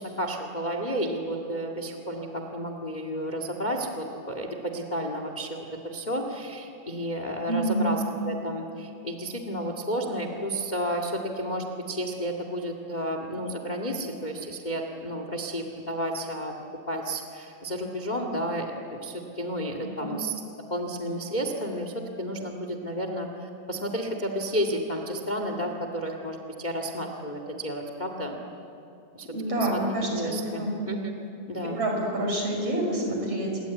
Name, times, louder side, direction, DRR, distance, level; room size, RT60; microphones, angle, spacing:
voice 1, 0.0-16.5 16.9-20.3 20.7-28.4 29.1-29.3 29.6-29.8 30.1-31.1 31.5-31.8, equal, 30° left, 4 dB, 0.8 m, -32 dB
voice 2, 7.5-7.9 20.0-20.1 29.3-30.8 31.8-33.6, right 1 dB, 40° right, 1 dB, 6.5 m, -27 dB
27.5 x 22.0 x 9.5 m, 2.8 s
omnidirectional pair, 4.4 m